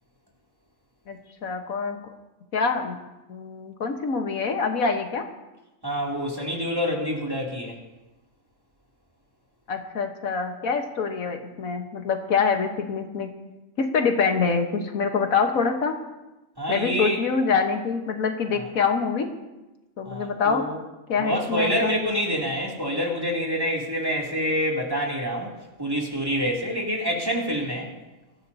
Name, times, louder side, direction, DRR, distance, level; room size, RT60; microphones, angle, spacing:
voice 1, 1.1-2.0 2.5-3.0 3.3-5.2 9.7-13.3 13.8-15.9 16.7-19.3 20.0-20.6 21.1-21.9, left 5 dB, 85° left, 5 dB, 1.7 m, -25 dB
voice 2, 5.8-7.8 16.6-17.2 18.5-18.6 20.0-20.8 21.2-25.5 25.8-27.9, equal, 15° right, -3 dB, 2.8 m, -27 dB
23.0 x 14.0 x 2.8 m, 1.0 s
omnidirectional pair, 1.4 m